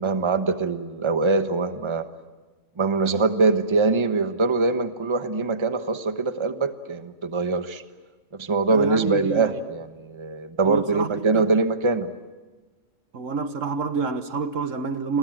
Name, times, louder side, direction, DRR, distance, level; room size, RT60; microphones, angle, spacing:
voice 1, 0.0-2.1 2.8-7.8 8.3-12.1, right 3 dB, 25° right, 1.1 m, -23 dB
voice 2, 8.7-9.6 10.6-11.5 13.1-15.2, right 5 dB, 70° right, 1.6 m, -28 dB
29.5 x 22.0 x 7.7 m
omnidirectional pair, 1.4 m